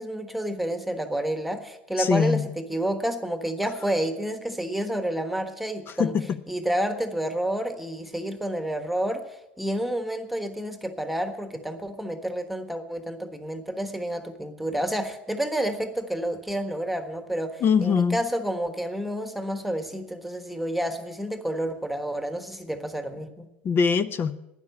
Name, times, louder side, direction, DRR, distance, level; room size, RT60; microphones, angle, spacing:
voice 1, 0.0-6.1 6.5-23.5, right 1 dB, ahead, 8 dB, 1.4 m, -29 dB
voice 2, 2.0-2.4 6.0-6.4 17.6-18.2 23.6-24.3, left 6 dB, 35° left, 14 dB, 0.7 m, -22 dB
11.5 x 9.8 x 8.2 m, 0.94 s
hypercardioid pair, 95°, 6 cm